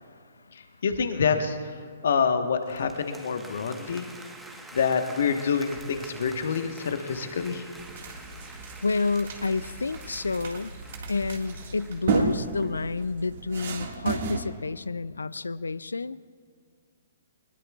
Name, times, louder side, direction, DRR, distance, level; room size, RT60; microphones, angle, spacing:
voice 1, 0.8-1.6 2.0-4.1 4.7-7.6, left 6 dB, 60° left, 7 dB, 1.3 m, -26 dB
sound 1, 2.6-13.0, right 2 dB, 5° right, 1.2 m, -47 dB
sound 2, 7.8-14.4, right 4 dB, 50° right, 1.9 m, -33 dB
voice 2, 8.8-10.7 11.1-16.2, left 4 dB, 75° left, 18 dB, 0.4 m, -29 dB
21.5 x 20.5 x 2.4 m, 2.1 s
figure-of-eight pair, 120°, 0 cm